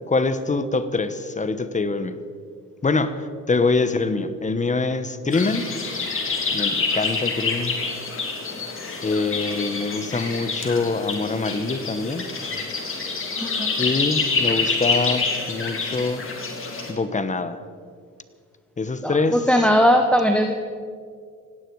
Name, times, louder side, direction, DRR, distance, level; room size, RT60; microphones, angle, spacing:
voice 1, 0.1-2.2 2.8-5.7 6.5-7.8 9.0-12.3 13.8-16.3 16.9-17.6 18.8-19.5, left 3 dB, 25° left, 12 dB, 1.1 m, -24 dB
sound 1, 5.3-16.9, left 4 dB, 45° left, 3.5 m, -27 dB
voice 2, 19.0-20.5, equal, 5° left, 4 dB, 1.2 m, -19 dB
18.5 x 16.5 x 4.8 m, 2.1 s
cardioid pair, 90°, 30 cm